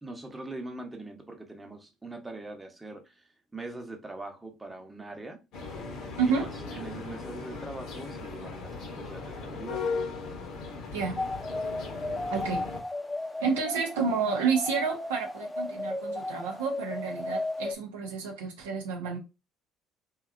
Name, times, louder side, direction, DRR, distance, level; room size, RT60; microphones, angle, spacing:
voice 1, 0.0-3.3 3.5-5.4 6.3-6.5 6.7-9.8, right 2 dB, 15° right, 0.8 m, -42 dB
sound 1, 5.5-12.8, left 4 dB, 65° left, 0.8 m, -37 dB
voice 2, 6.2-6.5 10.9-11.2 12.3-12.7 13.4-19.2, right 5 dB, 85° right, 0.6 m, -30 dB
sound 2, 11.2-17.7, left 2 dB, 10° left, 0.5 m, -34 dB
2.8 x 2.3 x 2.4 m
hypercardioid pair, 60°, 0 cm